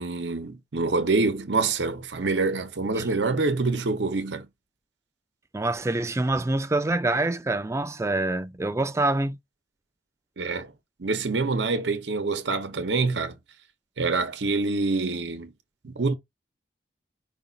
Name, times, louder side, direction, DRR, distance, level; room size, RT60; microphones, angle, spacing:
voice 1, 0.0-4.5 10.4-10.7 11.0-13.3 14.0-15.5 15.8-16.2, right 3 dB, 85° right, 0.8 m, -26 dB
voice 2, 5.5-9.4, right 2 dB, 15° right, 0.4 m, -26 dB
5.1 x 2.4 x 3.9 m
head